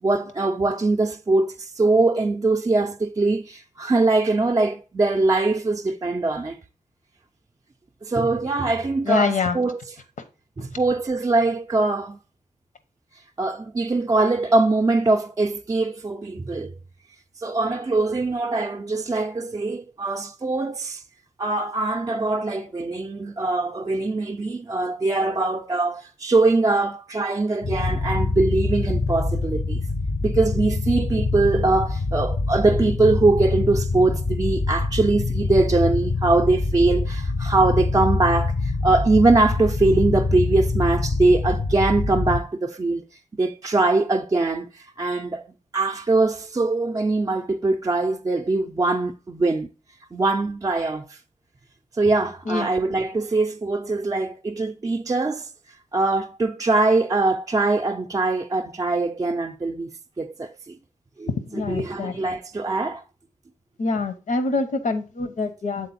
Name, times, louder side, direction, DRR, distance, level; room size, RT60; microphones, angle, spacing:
voice 1, 0.0-6.6 8.0-9.9 10.6-12.2 13.4-16.7 17.4-21.0 21.4-29.8 30.2-43.0 43.3-45.4 45.7-49.7 50.1-51.2 51.9-55.5 55.9-59.9 60.2-60.8 61.2-63.0, right 3 dB, 25° right, 0.5 m, -22 dB
voice 2, 9.1-9.6 52.5-52.7 61.5-62.2 63.8-65.9, left 4 dB, 75° left, 0.9 m, -25 dB
sound 1, 27.6-42.4, left 3 dB, 30° left, 0.6 m, -25 dB
7.5 x 3.8 x 4.0 m
cardioid pair, 85°, 13 cm